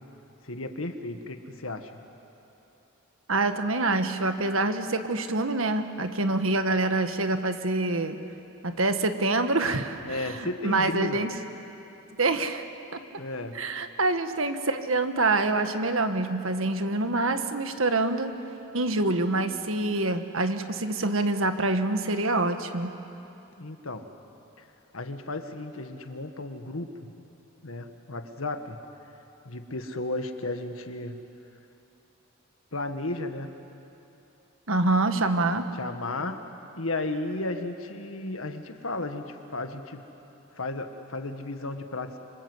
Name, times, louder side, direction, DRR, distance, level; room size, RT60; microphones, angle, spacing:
voice 1, 0.4-1.9 10.0-11.2 13.2-13.6 23.6-24.1 24.6-24.7 24.9-26.9 27.6-28.8 29.5-31.2 32.7-33.5 35.7-36.4 36.8-40.0 40.6-42.2, left 2 dB, 75° left, 7 dB, 1.8 m, -34 dB
voice 2, 3.3-8.2 8.6-11.3 12.2-12.6 12.9-13.0 13.5-18.4 18.7-22.9 34.7-35.7, right 2 dB, 70° right, 8 dB, 1.6 m, -26 dB
27.0 x 26.5 x 8.2 m, 2.9 s
head